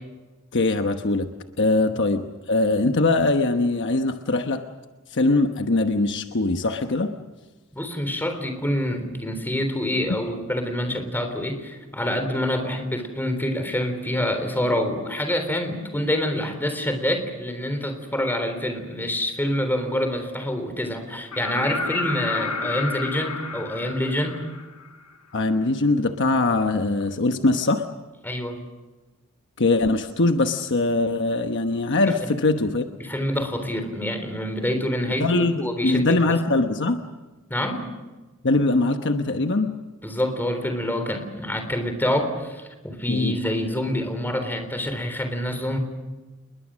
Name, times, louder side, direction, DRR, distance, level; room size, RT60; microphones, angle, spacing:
voice 1, 0.5-1.3 1.6-4.6 5.1-7.1 25.3-27.8 29.6-32.8 35.2-37.0 38.4-39.7 43.1-43.3, left 2 dB, 55° left, 6 dB, 1.1 m, -22 dB
voice 2, 7.7-24.4 28.2-28.6 32.1-32.3 33.0-36.2 37.5-37.8 40.0-45.8, left 1 dB, 10° left, 7 dB, 3.7 m, -26 dB
sound 1, 21.3-25.1 27.0-27.1, left 3 dB, 80° left, 1.5 m, -30 dB
28.5 x 21.5 x 6.3 m, 1.2 s
head